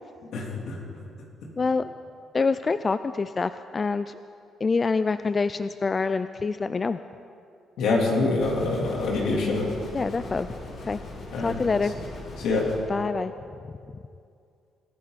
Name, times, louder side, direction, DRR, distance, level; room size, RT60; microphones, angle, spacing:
voice 1, 0.3-0.8 7.8-9.7 11.3-11.6 12.4-12.7, left 3 dB, 80° left, -2 dB, 3.4 m, -25 dB
voice 2, 1.6-1.9 2.3-4.2 4.6-7.0 9.9-10.5 10.8-11.0 11.4-11.9 12.9-13.3, left 4 dB, 35° left, 12 dB, 0.4 m, -26 dB
sound 1, 8.4-12.8, left 2 dB, 65° left, 4.1 m, -40 dB
23.5 x 14.5 x 4.2 m, 2.5 s
cardioid pair, 90°, 0 cm